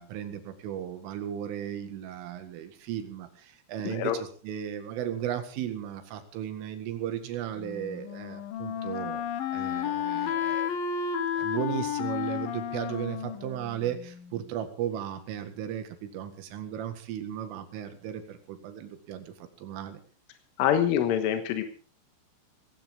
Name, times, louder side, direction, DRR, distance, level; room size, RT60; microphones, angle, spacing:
voice 1, 0.0-9.2 9.5-10.7 11.4-20.0, right 10 dB, 80° right, 8 dB, 4.3 m, -35 dB
voice 2, 3.9-4.2 20.6-21.6, left 10 dB, 85° left, 7 dB, 3.8 m, -25 dB
Wind instrument woodwind instrument, 7.6-14.4, left 8 dB, 65° left, 2.4 m, -32 dB
18.5 x 16.5 x 3.7 m, 0.40 s
omnidirectional pair, 5.6 m